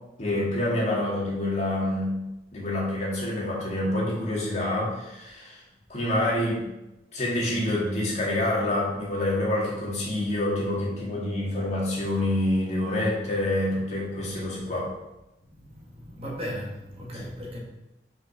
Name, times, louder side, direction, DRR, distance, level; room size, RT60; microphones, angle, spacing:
voice 1, 0.2-2.2 2.5-5.6 5.9-6.7 7.1-14.9, left 1 dB, 40° left, -4 dB, 2.3 m, -27 dB
voice 2, 15.7-17.6, equal, 35° right, -3 dB, 1.7 m, -36 dB
6.0 x 5.1 x 5.8 m, 0.94 s
head